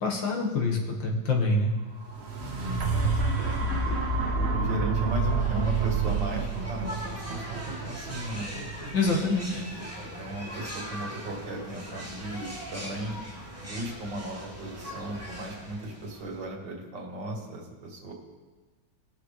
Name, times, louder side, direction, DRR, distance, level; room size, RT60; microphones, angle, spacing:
voice 1, 0.0-1.7 8.9-9.6, left 3 dB, 75° left, -1 dB, 2.3 m, -26 dB
sound 1, 2.0-10.1 10.6-10.7, right 4 dB, 40° right, 1.2 m, -29 dB
voice 2, 3.0-4.0 4.3-8.5 10.0-13.2 13.6-18.1, right 1 dB, 70° right, 0 dB, 2.3 m, -36 dB
sound 2, 4.9-16.5, equal, 10° right, 1.6 m, -41 dB
20.0 x 6.7 x 3.3 m, 1.3 s
omnidirectional pair, 2.1 m